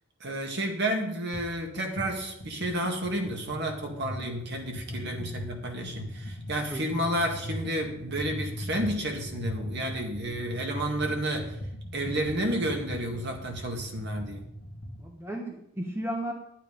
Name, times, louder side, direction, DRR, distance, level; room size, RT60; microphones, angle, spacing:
voice 1, 0.2-11.6 11.9-14.4, right 1 dB, 50° right, 2 dB, 1.9 m, -31 dB
sound 1, 1.3-1.5 1.8-15.1, equal, 70° left, 1.4 m, -39 dB
voice 2, 15.0-16.3, right 1 dB, 10° right, 1 dB, 1.2 m, -35 dB
10.5 x 9.3 x 5.2 m, 0.76 s
head